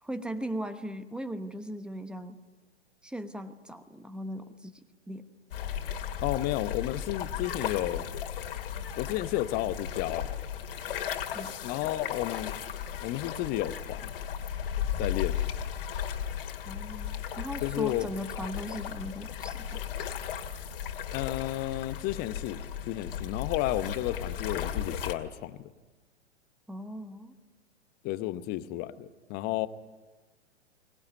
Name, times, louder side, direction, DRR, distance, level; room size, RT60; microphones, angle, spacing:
voice 1, 0.0-2.4 3.0-4.8 5.1-5.2 11.3-11.5 16.6-20.1 26.7-27.3, equal, 5° right, 11 dB, 1.0 m, -38 dB
sound 1, 5.5-25.1, left 9 dB, 50° left, 2.4 m, -35 dB
voice 2, 6.2-8.1 9.0-10.3 11.6-12.5 13.0-14.1 15.0-15.4 17.6-18.1 21.1-22.6 22.9-25.6 28.0-29.7, left 15 dB, 25° left, 14 dB, 0.9 m, -32 dB
22.5 x 20.0 x 9.5 m, 1.3 s
figure-of-eight pair, 110°, 35 cm